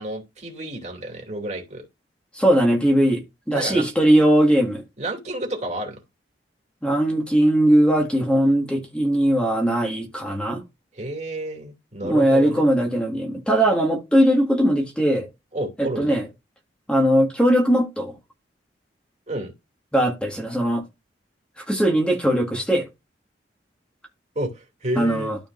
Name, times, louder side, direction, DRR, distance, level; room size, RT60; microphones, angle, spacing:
voice 1, 0.0-1.9 3.5-3.8 5.0-6.0 10.9-12.6 15.5-16.2 19.3-19.5 24.3-25.3, right 1 dB, 40° right, 2.6 m, -30 dB
voice 2, 2.3-3.2 3.5-4.8 6.8-10.6 12.0-15.3 15.8-16.3 16.9-18.2 19.9-20.8 21.6-22.9 25.0-25.4, right 1 dB, 5° left, 1.8 m, -19 dB
12.5 x 5.0 x 2.5 m
head